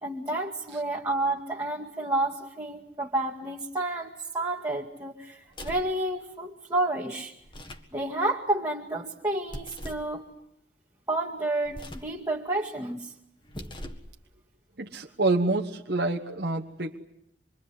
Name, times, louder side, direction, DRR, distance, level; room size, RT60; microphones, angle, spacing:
voice 1, 0.0-7.3 7.9-10.3 11.1-13.1, right 2 dB, 15° right, -3 dB, 2.0 m, -30 dB
sound 1, 5.5-6.0 7.4-7.9 9.5-10.1 11.6-12.2 13.4-14.1, equal, 25° left, 1.7 m, -41 dB
voice 2, 14.8-17.0, right 2 dB, 55° right, 2 dB, 1.3 m, -27 dB
26.5 x 23.5 x 9.8 m, 0.79 s
head